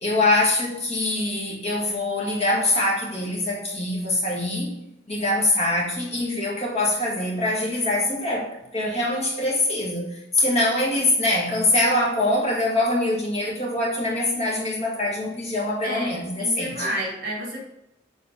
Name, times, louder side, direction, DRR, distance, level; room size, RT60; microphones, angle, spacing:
voice 1, 0.0-4.7 5.1-8.5 8.7-16.9, left 2 dB, 35° left, -3 dB, 2.0 m, -23 dB
voice 2, 15.8-17.6, right 1 dB, 50° right, -2 dB, 2.9 m, -30 dB
7.4 x 3.9 x 5.2 m, 0.83 s
head